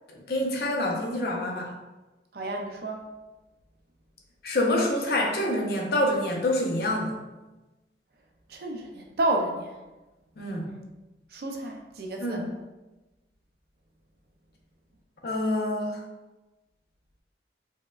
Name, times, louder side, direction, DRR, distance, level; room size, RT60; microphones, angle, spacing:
voice 1, 0.1-1.7 4.4-7.2 10.4-10.7 12.2-12.5 15.2-16.0, left 1 dB, 55° left, 0 dB, 0.5 m, -27 dB
voice 2, 2.3-3.0 8.5-9.8 10.7-10.8 11.3-12.5, right 1 dB, 55° right, 2 dB, 0.4 m, -31 dB
4.6 x 2.1 x 2.3 m, 1.1 s
head